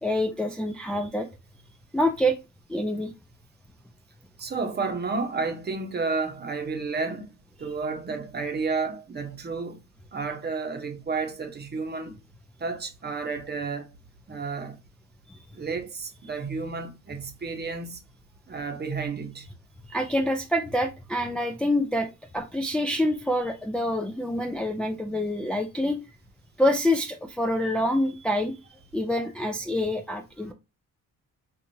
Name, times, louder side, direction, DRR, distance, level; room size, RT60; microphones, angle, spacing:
voice 1, 0.0-1.3 1.9-2.4 2.7-3.1 15.3-15.4 19.9-26.0 26.6-28.6 28.9-30.5, left 1 dB, 5° left, 0.4 m, -26 dB
voice 2, 4.4-9.8 10.1-12.2 12.6-13.9 14.3-14.8 15.5-18.0 18.5-19.5, right 4 dB, 35° right, 0.9 m, -31 dB
4.5 x 2.4 x 2.6 m
cardioid pair, 90°, 30 cm